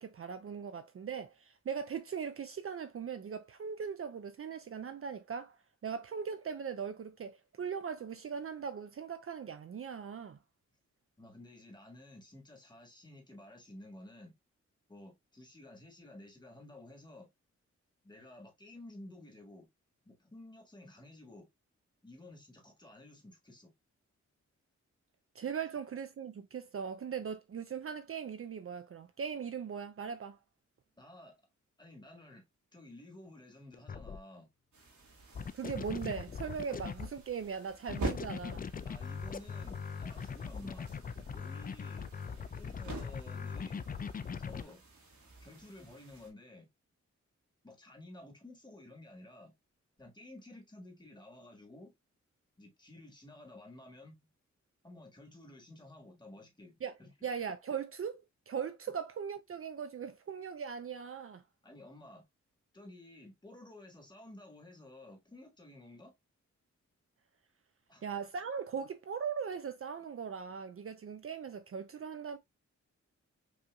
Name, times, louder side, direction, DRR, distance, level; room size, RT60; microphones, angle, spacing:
voice 1, 0.0-5.6 5.8-10.4 25.3-30.4 35.5-38.6 56.8-56.9 57.2-61.4 68.0-72.4, right 6 dB, 50° right, 0.5 m, -39 dB
voice 2, 11.2-14.4 14.9-17.3 18.0-19.7 20.0-21.5 22.0-23.7 31.0-31.4 31.8-32.4 32.7-34.5 38.8-40.9 41.3-42.1 42.5-43.9 44.4-44.8 45.4-46.7 47.6-49.5 50.0-51.9 52.6-54.3 54.8-57.3 61.6-62.2 62.7-66.1 67.9-68.0, left 1 dB, 15° left, 1.5 m, -53 dB
sound 1, 33.7-34.2 35.3-37.2 37.9-44.6, left 6 dB, 30° left, 0.4 m, -40 dB
sound 2, 34.7-46.3, right 2 dB, 80° right, 2.1 m, -47 dB
5.5 x 2.7 x 2.2 m
cardioid pair, 85°, 29 cm